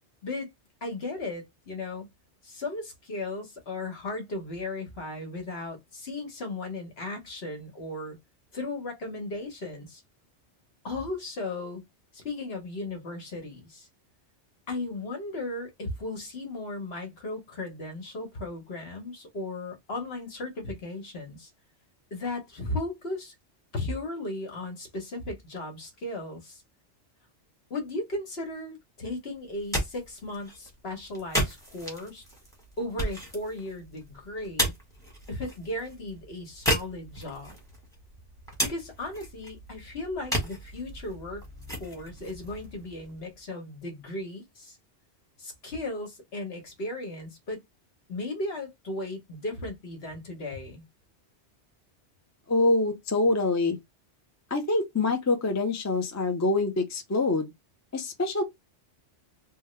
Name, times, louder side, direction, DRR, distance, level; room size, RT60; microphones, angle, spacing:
voice 1, 0.8-2.1 2.4-8.2 8.5-10.0 10.8-11.8 12.1-13.9 14.7-21.5 22.1-23.3 23.7-26.6 27.7-32.2 32.8-34.7 35.3-37.5 38.6-41.5 41.8-44.8 45.4-47.6 48.1-50.8, left 2 dB, 60° left, 1.3 m, -36 dB
sound 1, 29.4-43.4, equal, 5° left, 1.2 m, -35 dB
voice 2, 52.5-53.8 54.5-57.5 57.9-58.4, left 2 dB, 25° left, 0.4 m, -25 dB
3.4 x 2.2 x 3.1 m
omnidirectional pair, 1.2 m